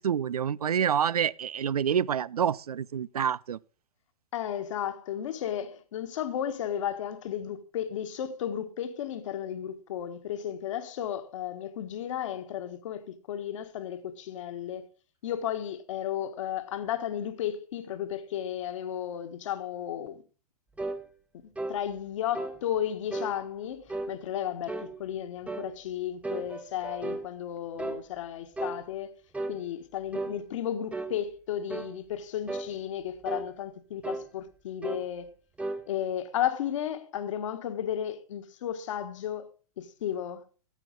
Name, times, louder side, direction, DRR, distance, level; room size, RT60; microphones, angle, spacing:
voice 1, 0.0-3.6, right 8 dB, 70° right, 0.5 m, -27 dB
voice 2, 4.3-14.9 15.2-20.2 21.7-29.2 29.5-35.3 35.9-39.5 39.8-40.4, left 10 dB, 55° left, 1.6 m, -34 dB
sound 1, 20.8-21.0 21.6-21.8 22.3-22.6 23.1-23.4 23.9-24.1 24.7-24.9 25.5-25.7 26.2-27.3 27.8-28.0 28.6-28.8 29.3-29.6 30.1-30.4 30.9-31.2 31.7-31.9 32.5-32.7 33.3-33.5 34.0-34.3 34.8-35.1 35.6-35.8, right 2 dB, 5° right, 1.1 m, -34 dB
15.0 x 9.1 x 3.9 m
figure-of-eight pair, 110°, 20 cm